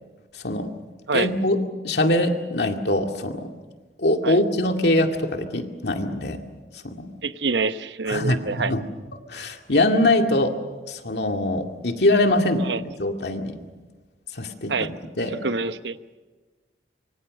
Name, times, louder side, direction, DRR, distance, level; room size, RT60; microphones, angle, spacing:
voice 1, 1.1-1.6 1.8-3.5 4.0-6.4 6.8-7.1 8.1-8.8 9.3-10.5 10.9-12.7 13.0-13.6 14.3-14.9 15.2-15.5, left 1 dB, 70° left, 4 dB, 2.2 m, -23 dB
voice 2, 7.2-8.7 12.6-12.8 14.7-14.9 15.4-16.0, right 4 dB, 80° right, 11 dB, 0.9 m, -26 dB
25.5 x 24.0 x 6.6 m, 1.3 s
head